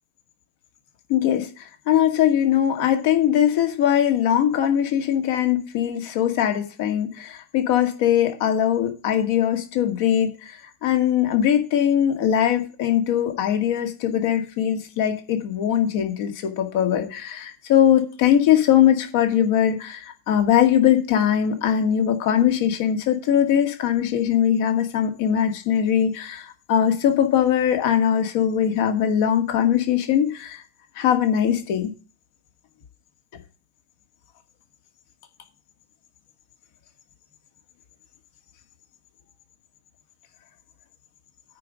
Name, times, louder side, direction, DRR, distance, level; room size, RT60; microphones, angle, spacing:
voice 1, 1.1-1.5 1.9-30.6 31.0-31.9, left 10 dB, 50° left, 2.1 m, -21 dB
9.2 x 5.0 x 7.5 m
figure-of-eight pair, 90°, 0 cm